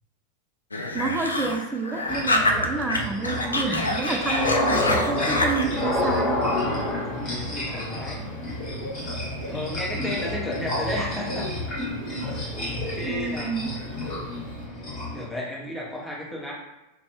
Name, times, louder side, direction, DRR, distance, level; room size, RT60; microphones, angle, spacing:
sound 1, 0.7-3.0 3.2-5.7, left 2 dB, 75° left, 0.3 m, -26 dB
voice 1, 0.9-6.5 13.0-13.9, right 4 dB, 15° right, 4 dB, 0.3 m, -29 dB
sound 2, 2.1-15.3, left 1 dB, 35° left, 1.1 m, -29 dB
Bird / Cricket, 6.0-14.6, equal, 75° right, 0.7 m, -42 dB
voice 2, 7.1-8.3 9.5-11.5 12.5-13.5 15.1-16.5, left 1 dB, 10° left, -4 dB, 0.9 m, -33 dB
2.5 x 2.2 x 3.0 m, 0.99 s
figure-of-eight pair, 90°, 0 cm